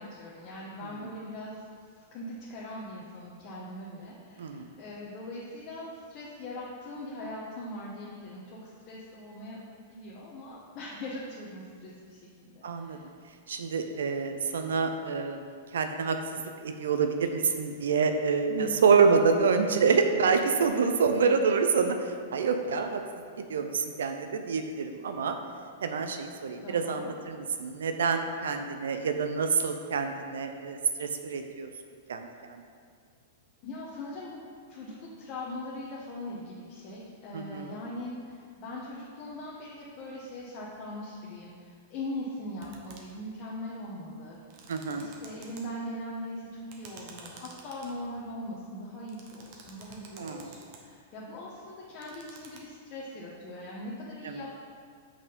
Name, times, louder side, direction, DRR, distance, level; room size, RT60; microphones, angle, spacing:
voice 1, 0.0-1.6 2.1-9.6 9.9-12.5 12.8-13.1 18.5-18.9 26.6-27.1 33.6-44.4 45.0-54.5, left 1 dB, 40° left, -5 dB, 1.1 m, -41 dB
voice 2, 4.4-4.7 12.6-13.0 13.5-15.4 15.7-23.0 23.4-25.4 25.8-31.7 32.1-32.6 37.3-37.8 44.7-45.1 50.2-50.5 54.2-54.4, right 5 dB, 80° right, 6 dB, 0.5 m, -27 dB
sound 1, 42.6-43.2 44.3-45.6 46.7-48.3 49.1-50.8 51.8-52.6, right 6 dB, 50° right, 1.1 m, -50 dB
6.1 x 4.3 x 5.2 m, 2.1 s
hypercardioid pair, 120°, 0 cm